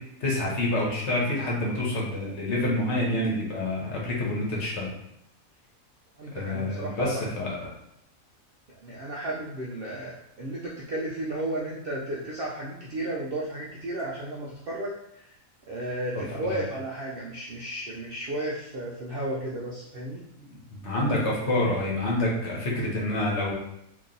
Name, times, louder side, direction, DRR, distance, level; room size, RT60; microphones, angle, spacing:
voice 1, 0.2-4.9 6.3-7.7 16.1-16.6 20.5-23.5, left 1 dB, 55° left, -3 dB, 1.1 m, -27 dB
voice 2, 6.2-7.3 8.8-15.4 15.7-20.2, right 1 dB, 65° right, -4 dB, 0.6 m, -33 dB
2.9 x 2.6 x 3.8 m, 0.78 s
omnidirectional pair, 1.5 m